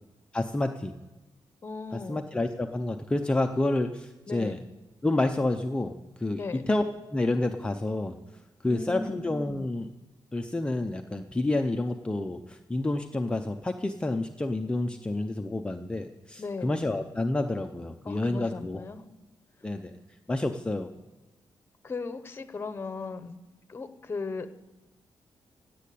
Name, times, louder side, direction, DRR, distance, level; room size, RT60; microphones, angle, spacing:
voice 1, 0.3-0.9 1.9-4.6 5.0-6.8 7.1-8.2 8.6-9.9 10.3-18.8 19.6-19.9 20.3-20.9, left 2 dB, 10° left, 5 dB, 0.5 m, -29 dB
voice 2, 1.6-2.3 4.3-4.5 6.3-6.6 8.6-9.2 16.4-16.7 18.0-19.0 21.8-23.4 23.7-24.6, left 4 dB, 25° left, 10 dB, 1.0 m, -37 dB
17.0 x 8.5 x 8.5 m, 1.1 s
wide cardioid pair, 165°, 9 cm